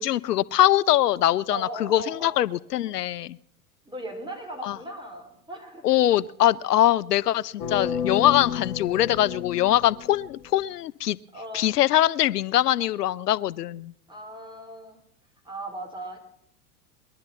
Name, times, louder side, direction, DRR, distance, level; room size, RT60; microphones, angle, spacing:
voice 1, 0.0-3.4 4.6-4.8 5.8-11.2 11.5-13.9, left 13 dB, 80° left, 20 dB, 0.5 m, -22 dB
voice 2, 1.5-2.4 3.9-5.8 8.4-8.6 11.3-11.7 14.1-15.0 15.4-16.2, right 1 dB, 10° right, 3 dB, 4.1 m, -38 dB
sound 1, 7.6-10.6, left 7 dB, 60° left, 1.5 m, -31 dB
21.5 x 12.0 x 5.6 m, 0.69 s
hypercardioid pair, 90°, 46 cm